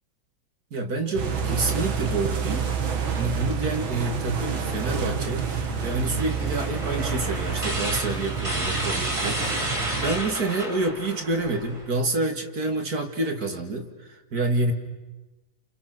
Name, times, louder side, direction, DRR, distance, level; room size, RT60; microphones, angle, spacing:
voice 1, 0.7-14.7, right 2 dB, 50° right, 4 dB, 2.6 m, -28 dB
sound 1, 1.2-10.2, right 6 dB, 85° right, 2.7 m, -28 dB
sound 2, 5.4-11.9, right 1 dB, 15° right, 2.5 m, -32 dB
29.5 x 28.5 x 6.2 m, 1.1 s
omnidirectional pair, 2.1 m